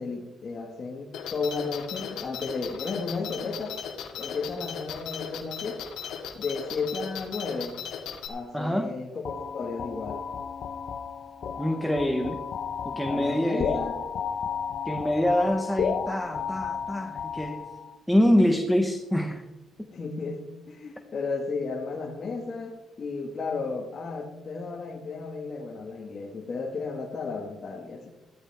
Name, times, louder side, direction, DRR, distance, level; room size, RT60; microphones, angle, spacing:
voice 1, 0.0-3.8 4.2-6.0 6.4-7.8 8.3-10.2 13.1-13.9 19.9-28.1, left 4 dB, 45° left, -2 dB, 1.9 m, -33 dB
sound 1, 1.1-8.3, left 8 dB, 85° left, 2.2 m, -37 dB
voice 2, 8.5-8.9 11.6-12.4 12.8-13.8 14.8-17.6 18.1-19.4, equal, ahead, 4 dB, 1.2 m, -25 dB
sound 2, 9.3-18.0, left 7 dB, 60° left, 1.0 m, -33 dB
15.0 x 13.5 x 3.6 m, 1.0 s
cardioid pair, 90°, 0 cm